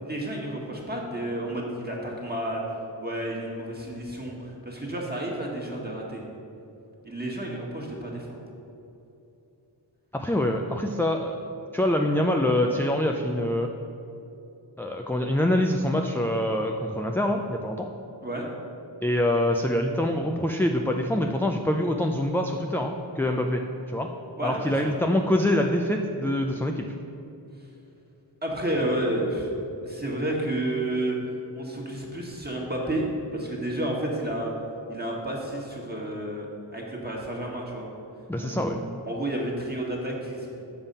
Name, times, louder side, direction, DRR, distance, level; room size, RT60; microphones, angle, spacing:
voice 1, 0.0-2.6 3.0-6.2 7.0-8.4 18.2-18.5 24.4-24.9 28.4-29.5 29.8-31.2 31.5-34.5 34.9-36.5 36.7-37.9 38.4-38.8 39.1-40.5, right 1 dB, 20° right, -2 dB, 1.6 m, -31 dB
voice 2, 10.1-11.4 11.7-13.7 14.8-17.9 19.0-23.6 23.9-24.1 24.4-26.9 38.3-38.8, left 1 dB, 5° left, 3 dB, 0.4 m, -25 dB
7.1 x 5.5 x 5.4 m, 2.9 s
wide cardioid pair, 45°, 46 cm